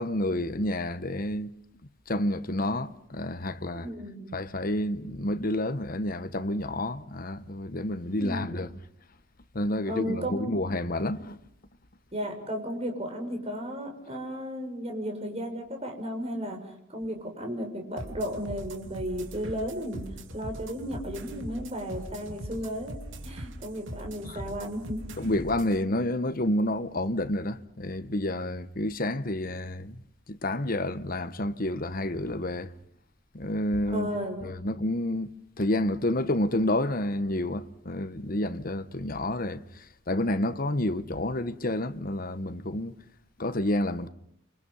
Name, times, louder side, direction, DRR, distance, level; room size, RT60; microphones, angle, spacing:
voice 1, 0.0-1.5 2.1-3.9 4.3-8.7 9.5-11.4 24.3-24.4 25.2-30.0 30.3-32.7 33.3-34.1 34.4-42.9 43.4-44.1, left 1 dB, 45° left, 1.2 m, -29 dB
voice 2, 3.7-4.3 8.1-8.4 9.9-10.6 12.1-16.6 16.9-20.0 20.3-23.0 23.2-25.3 33.9-34.4, equal, 30° right, 6.6 m, -34 dB
sound 1, 18.0-25.8, right 1 dB, 75° right, 2.8 m, -41 dB
29.5 x 25.5 x 5.6 m
head